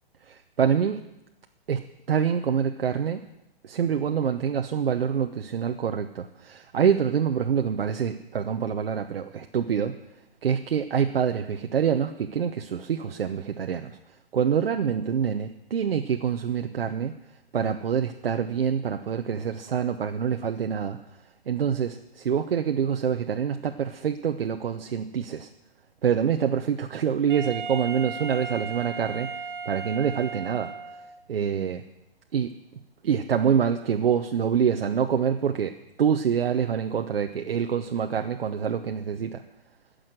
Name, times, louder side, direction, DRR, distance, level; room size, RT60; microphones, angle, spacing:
voice 1, 0.3-1.0 1.7-3.2 3.6-10.0 10.4-14.0 14.3-17.1 17.5-21.0 21.5-25.5 26.0-29.3 29.7-30.7 31.3-31.8 32.3-32.5 33.0-39.4, right 7 dB, 70° right, 5 dB, 0.9 m, -26 dB
Wind instrument woodwind instrument, 27.3-31.2, right 5 dB, 55° right, 1.3 m, -36 dB
16.5 x 6.6 x 7.9 m, 0.89 s
hypercardioid pair, 175°, 30 cm